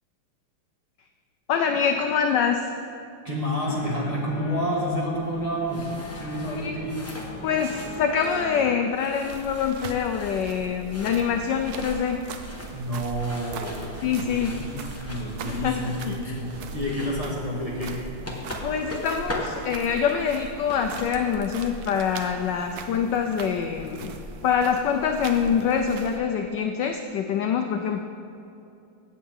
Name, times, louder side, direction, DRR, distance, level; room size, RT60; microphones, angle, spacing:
voice 1, 1.5-2.7 6.6-6.8 7.4-12.2 14.0-14.6 15.4-16.4 18.6-24.2 24.4-28.0, left 7 dB, 75° left, 5 dB, 1.0 m, -25 dB
voice 2, 3.2-7.0 12.7-13.8 14.2-18.0, equal, 20° right, -5 dB, 1.3 m, -29 dB
sound 1, 3.6-8.8, left 2 dB, 60° left, 1.4 m, -40 dB
sound 2, 5.2-21.4, equal, 10° left, 0.7 m, -41 dB
sound 3, 9.3-26.2, right 4 dB, 70° right, 0.9 m, -40 dB
15.5 x 7.5 x 3.6 m, 2.7 s
omnidirectional pair, 2.4 m